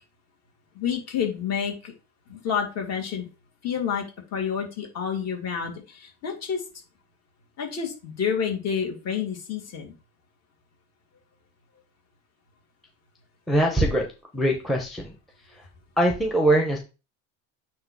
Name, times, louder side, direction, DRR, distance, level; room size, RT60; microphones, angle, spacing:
voice 1, 0.7-1.9 2.3-3.3 3.6-4.0 4.3-6.6 7.6-9.9, left 7 dB, 40° left, 2 dB, 2.5 m, -29 dB
voice 2, 13.5-14.0 14.3-15.2 15.5-15.7 16.0-16.8, right 1 dB, ahead, 3 dB, 0.8 m, -22 dB
8.6 x 3.1 x 5.3 m, 0.31 s
cardioid pair, 150°, 42 cm